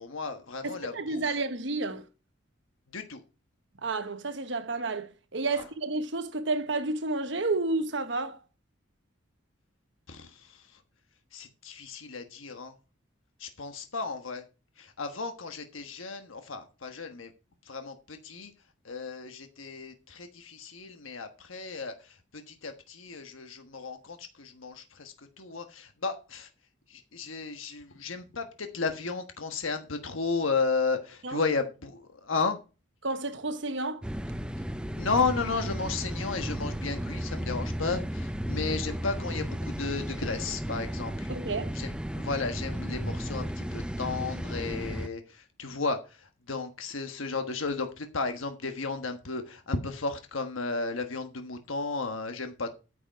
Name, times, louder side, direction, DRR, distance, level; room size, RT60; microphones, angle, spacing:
voice 1, 0.0-1.3 2.9-3.2 5.5-5.7 10.1-10.8 11.3-12.7 13.4-14.4 14.8-17.3 17.6-18.5 18.8-26.5 26.9-32.6 34.9-41.3 41.7-52.7, left 4 dB, 85° left, 1.3 m, -34 dB
voice 2, 0.6-2.1 3.8-8.4 31.2-31.4 33.0-34.0 41.3-41.7, right 3 dB, 65° right, 1.1 m, -31 dB
sound 1, 34.0-45.1, equal, 5° right, 0.4 m, -34 dB
9.7 x 7.9 x 4.6 m
head